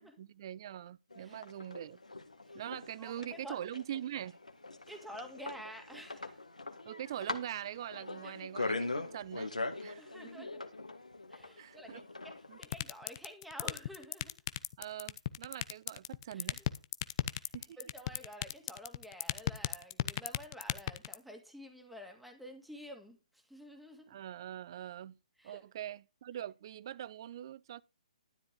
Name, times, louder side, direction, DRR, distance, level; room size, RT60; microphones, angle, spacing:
voice 1, 0.0-2.0 2.5-4.4 6.8-9.5 9.8-10.1 10.3-10.5 11.6-12.0 12.5-12.6 14.8-16.6 17.5-17.8 24.1-25.2 25.4-27.8, right 11 dB, 40° right, 0.6 m, -43 dB
sound 1, 1.1-12.7, left 2 dB, 75° left, 1.9 m, -41 dB
voice 2, 3.0-3.6 4.9-6.4 8.2-8.4 9.7-10.7 11.3-14.3 16.3-16.6 17.3-17.5 17.8-24.2 25.4-25.6, equal, ahead, 2.2 m, -50 dB
sound 2, 12.6-21.1, left 13 dB, 35° left, 0.7 m, -33 dB
12.5 x 10.5 x 3.7 m
figure-of-eight pair, 130°, 4 cm